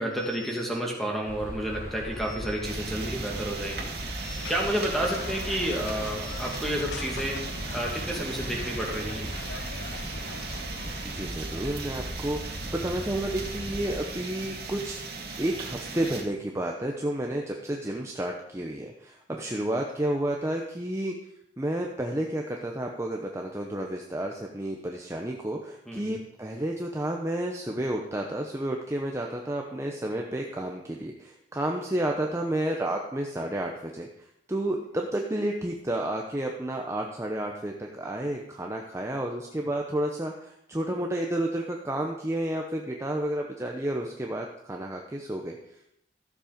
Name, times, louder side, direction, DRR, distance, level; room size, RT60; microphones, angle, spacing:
voice 1, 0.0-9.3 25.9-26.2, equal, ahead, -1 dB, 2.3 m, -31 dB
sound 1, 1.2-13.9, equal, 50° left, 3.6 m, -39 dB
sound 2, 2.6-16.2, right 3 dB, 60° right, 2.2 m, -37 dB
sound 3, 4.4-11.1, left 4 dB, 80° left, 0.8 m, -42 dB
voice 2, 11.0-21.2 21.6-34.1 34.5-45.6, right 1 dB, 15° right, 1 dB, 0.8 m, -31 dB
13.5 x 7.5 x 5.1 m, 0.80 s
head